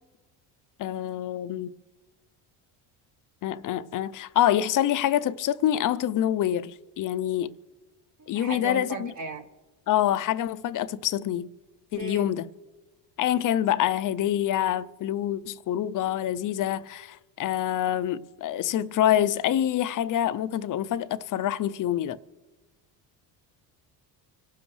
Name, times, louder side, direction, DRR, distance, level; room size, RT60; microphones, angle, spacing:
voice 1, 0.8-1.7 3.4-7.5 8.3-9.1 9.9-11.5 11.9-12.5 13.2-22.2, left 11 dB, 45° left, 0.6 m, -26 dB
voice 2, 8.2-9.4 12.0-12.3, right 4 dB, 40° right, 1.1 m, -36 dB
26.0 x 12.5 x 3.2 m
cardioid pair, 105°, 46 cm